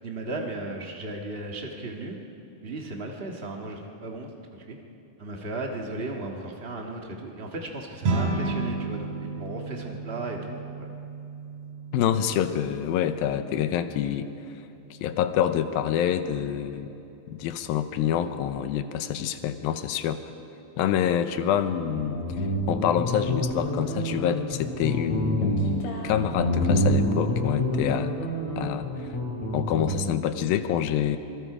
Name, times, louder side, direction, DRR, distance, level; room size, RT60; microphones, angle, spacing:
voice 1, 0.0-2.2 2.6-4.8 5.2-10.9, right 2 dB, 75° right, 1 dB, 0.5 m, -36 dB
sound 1, 8.0-17.5, right 3 dB, 50° right, 3.9 m, -34 dB
voice 2, 11.9-14.3 14.9-17.0 17.3-20.2 20.8-28.1 28.6-29.1 29.5-31.2, left 10 dB, 85° left, 9 dB, 2.7 m, -27 dB
Guitar, 21.8-30.2, equal, 50° left, 3.7 m, -27 dB
26.5 x 23.5 x 5.0 m, 2.9 s
omnidirectional pair, 4.2 m